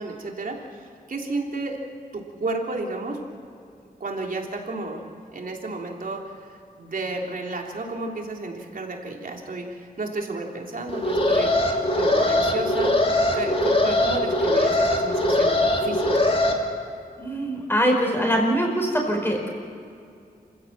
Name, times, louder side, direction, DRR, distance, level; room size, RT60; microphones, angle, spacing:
voice 1, 0.0-1.8 2.1-3.2 4.0-5.0 5.3-13.0 13.3-16.1, right 2 dB, 60° right, 1 dB, 3.3 m, -32 dB
Alarm, 10.9-16.5, left 1 dB, 35° left, 2.9 m, -21 dB
voice 2, 17.2-19.5, equal, 15° left, 1 dB, 5.0 m, -23 dB
27.5 x 16.0 x 7.4 m, 2.4 s
wide cardioid pair, 100°, 16 cm